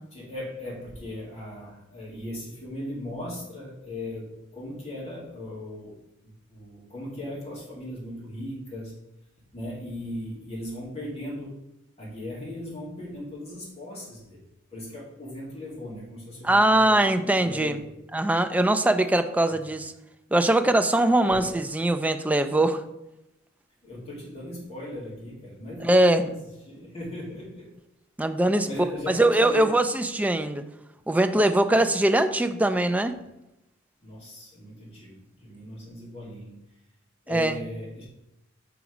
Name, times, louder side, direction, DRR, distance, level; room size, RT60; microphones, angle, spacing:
voice 1, 0.1-6.0 6.5-8.9 9.5-11.6 12.0-14.4 14.7-17.9 19.5-19.6 21.2-21.5 23.8-26.4 26.7-27.7 28.6-29.7 34.0-36.5 37.2-38.1, left 1 dB, 30° left, -5 dB, 2.4 m, -38 dB
voice 2, 16.4-17.8 18.1-19.9 20.3-22.8 25.8-26.3 28.2-28.7 29.1-30.6 31.1-33.2 37.3-37.6, right 1 dB, 5° right, 9 dB, 0.3 m, -22 dB
5.9 x 4.0 x 4.9 m, 0.91 s
head